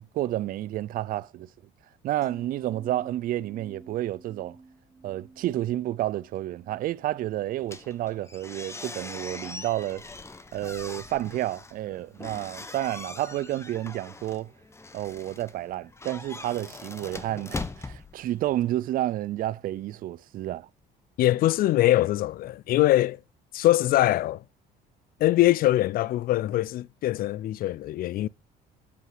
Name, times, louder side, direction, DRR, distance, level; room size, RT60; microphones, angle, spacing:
voice 1, 0.0-1.5 2.0-4.6 5.0-10.0 10.5-14.5 14.9-20.7, right 14 dB, 55° right, 0.4 m, -30 dB
sound 1, 2.2-8.5 8.8-9.2, right 3 dB, 20° right, 3.2 m, -52 dB
sound 2, 7.6-18.8, left 3 dB, 15° left, 1.1 m, -41 dB
voice 2, 21.2-23.2 23.5-24.4 25.2-28.3, left 15 dB, 60° left, 0.4 m, -23 dB
8.4 x 7.5 x 5.7 m
cardioid pair, 110°, 17 cm